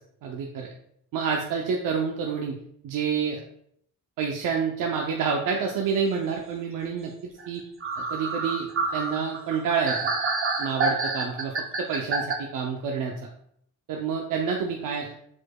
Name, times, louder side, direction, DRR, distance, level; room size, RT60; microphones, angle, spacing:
voice 1, 0.2-0.7 1.1-2.5 2.8-3.4 4.2-7.1 7.5-7.6 8.1-8.7 8.9-10.1 10.6-13.3 13.9-15.1, right 6 dB, 90° right, 1 dB, 0.6 m, -28 dB
sound 1, 7.4-7.5 7.8-12.3, right 3 dB, 40° right, 0.7 m, -28 dB
4.6 x 4.4 x 2.2 m, 0.69 s
cardioid pair, 115°, 32 cm